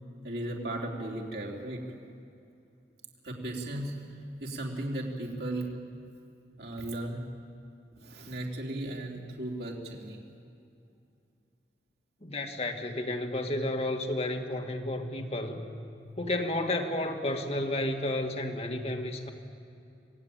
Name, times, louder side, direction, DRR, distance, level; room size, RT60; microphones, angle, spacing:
voice 1, 0.2-1.8 3.2-3.9 4.4-5.7 6.6-7.3 8.0-10.2 13.0-13.1, right 1 dB, 65° right, -1 dB, 3.8 m, -36 dB
voice 2, 12.2-15.7 16.2-19.3, left 1 dB, 35° left, 3 dB, 2.1 m, -32 dB
27.0 x 19.0 x 9.0 m, 2.6 s
head